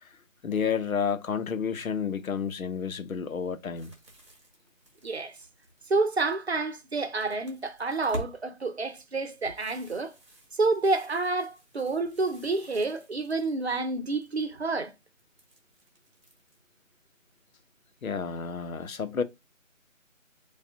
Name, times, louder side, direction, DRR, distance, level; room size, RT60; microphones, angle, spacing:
voice 1, 0.4-3.9 18.0-19.2, left 6 dB, 90° left, 0.7 m, -30 dB
sound 1, 3.7-6.6 7.0-8.3 8.7-13.7 14.0-14.6 15.2-16.6, equal, 20° right, 1.1 m, -47 dB
voice 2, 5.0-5.4 5.9-10.1 10.5-14.9, right 3 dB, 50° right, 0.7 m, -29 dB
4.8 x 2.3 x 2.6 m
figure-of-eight pair, 170°, 41 cm